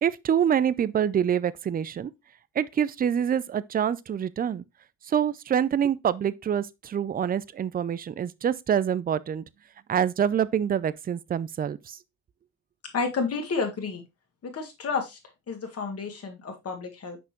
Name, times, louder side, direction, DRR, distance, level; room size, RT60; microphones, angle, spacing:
voice 1, 0.0-2.1 2.6-4.6 5.1-9.4 9.9-12.0, right 9 dB, 30° right, 0.4 m, -26 dB
voice 2, 12.9-14.0 14.4-15.2 15.5-17.2, left 4 dB, 50° left, 1.9 m, -30 dB
6.0 x 5.5 x 3.0 m
cardioid pair, 90°, 30 cm